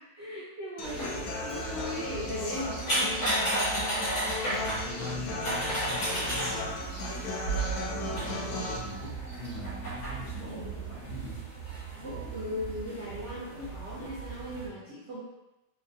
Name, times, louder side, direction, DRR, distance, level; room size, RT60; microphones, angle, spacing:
voice 1, 0.0-3.5 10.5-10.7 12.0-15.2, left 1 dB, 60° right, -9 dB, 0.7 m, -38 dB
sound 1, 0.8-14.7, right 2 dB, 85° left, 2.0 m, -34 dB
Human voice / Acoustic guitar, 0.8-8.8, left 3 dB, 70° left, 1.0 m, -36 dB
Walk footsteps, 1.3-9.6, right 1 dB, 85° right, 0.3 m, -49 dB
voice 2, 4.6-6.8 7.8-11.4, left 1 dB, 50° left, -8 dB, 1.2 m, -42 dB
4.4 x 2.4 x 2.6 m, 0.94 s
omnidirectional pair, 1.9 m